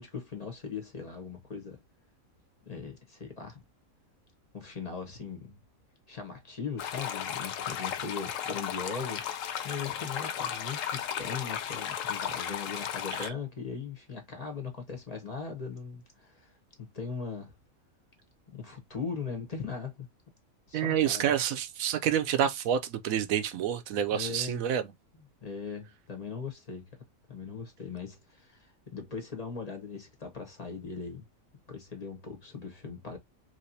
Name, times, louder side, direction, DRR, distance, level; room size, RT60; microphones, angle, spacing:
voice 1, 0.0-1.8 2.7-3.6 4.5-5.6 6.1-9.2 9.6-17.5 18.5-20.1 20.7-21.3 24.1-24.6 25.1-26.9 27.3-31.3 31.7-33.2, left 5 dB, 30° left, 0.9 m, -39 dB
sound 1, 6.8-13.3, left 9 dB, 75° left, 1.0 m, -35 dB
voice 2, 20.7-24.8, right 9 dB, 80° right, 1.0 m, -28 dB
3.2 x 2.9 x 2.7 m
omnidirectional pair, 1.4 m